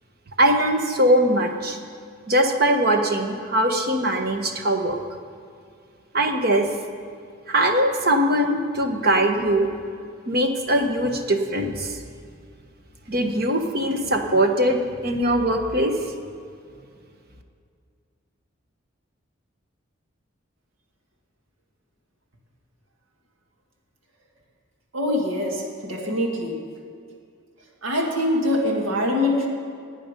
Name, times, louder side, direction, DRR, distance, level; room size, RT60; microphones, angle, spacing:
voice 1, 0.4-1.8 2.3-5.0 6.1-6.7 7.5-9.7 10.3-12.0 13.1-15.9, right 1 dB, 50° right, 5 dB, 1.2 m, -21 dB
voice 2, 24.9-26.6 27.8-29.5, left 1 dB, 85° right, 0 dB, 2.1 m, -24 dB
17.0 x 9.4 x 5.3 m, 2.3 s
head